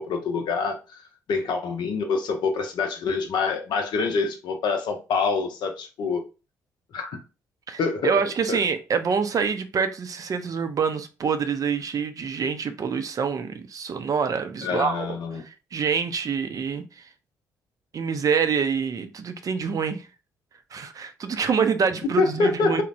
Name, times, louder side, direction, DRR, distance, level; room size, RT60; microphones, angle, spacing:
voice 1, 0.0-6.2 6.9-7.2 7.8-8.2 8.5-8.6 14.6-15.4 22.2-22.8, left 4 dB, 60° left, 0.6 m, -26 dB
voice 2, 8.0-15.1 15.7-17.0 17.9-20.1 20.7-22.8, right 6 dB, 45° right, 0.4 m, -26 dB
3.1 x 2.0 x 2.5 m
hypercardioid pair, 45°, 9 cm